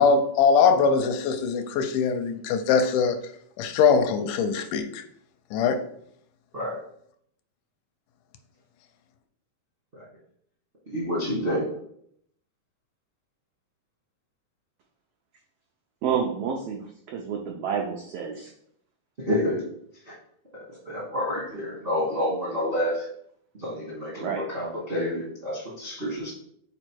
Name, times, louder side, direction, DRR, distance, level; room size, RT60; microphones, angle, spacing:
voice 1, 0.0-3.2 3.6-5.0 5.5-5.8, left 5 dB, 80° left, 2.1 m, -22 dB
voice 2, 10.9-11.7 19.2-19.6 20.0-20.1 20.5-23.1 23.6-26.3, left 1 dB, 45° right, 0.7 m, -29 dB
voice 3, 16.0-18.5 24.2-24.5, right 7 dB, 90° right, 1.3 m, -29 dB
5.0 x 4.2 x 4.5 m
omnidirectional pair, 3.6 m